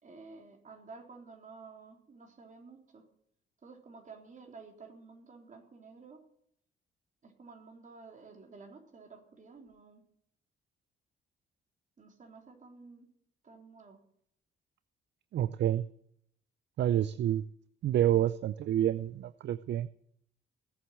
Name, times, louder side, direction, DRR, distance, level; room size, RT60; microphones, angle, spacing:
voice 1, 0.0-3.1 3.6-6.2 7.2-10.0 12.0-13.1 13.4-14.0, right 4 dB, 40° right, 3 dB, 3.8 m, -52 dB
voice 2, 15.3-15.8 16.8-17.4 17.8-19.9, right 11 dB, 60° right, 17 dB, 0.5 m, -28 dB
17.5 x 8.0 x 8.4 m, 0.69 s
cardioid pair, 90°, 20 cm